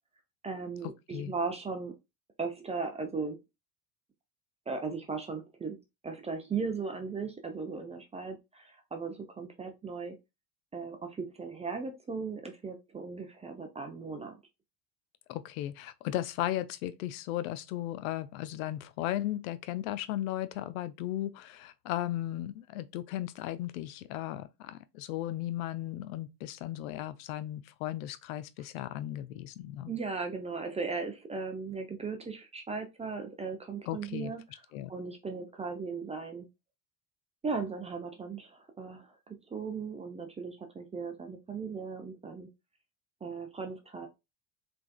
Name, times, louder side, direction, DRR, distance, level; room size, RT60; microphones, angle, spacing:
voice 1, 0.4-1.9 2.4-3.4 4.7-5.8 6.0-10.2 10.7-14.3 29.9-34.4 34.9-36.5 37.4-42.5 43.2-44.1, right 4 dB, 15° right, 0.5 m, -37 dB
voice 2, 15.3-29.9 33.9-34.3 34.7-34.9, left 13 dB, 55° left, 0.6 m, -36 dB
3.4 x 3.3 x 2.2 m
figure-of-eight pair, 70°, 49 cm